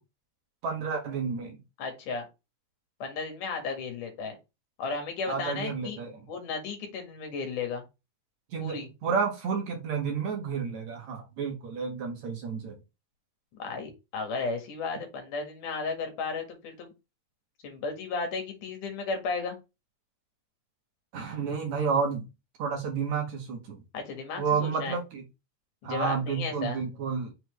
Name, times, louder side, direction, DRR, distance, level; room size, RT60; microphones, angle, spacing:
voice 1, 0.6-1.6 5.3-6.3 8.5-12.8 21.1-22.3 22.6-23.8 24.4-25.2 25.8-27.3, right 6 dB, 55° right, 2 dB, 2.4 m, -31 dB
voice 2, 1.8-2.3 3.0-4.4 4.8-6.0 6.3-7.8 8.6-8.9 13.6-16.9 17.6-19.6 23.9-25.0 25.8-26.9, left 4 dB, 60° left, 4 dB, 2.9 m, -34 dB
6.7 x 4.4 x 3.2 m, 0.25 s
omnidirectional pair, 4.6 m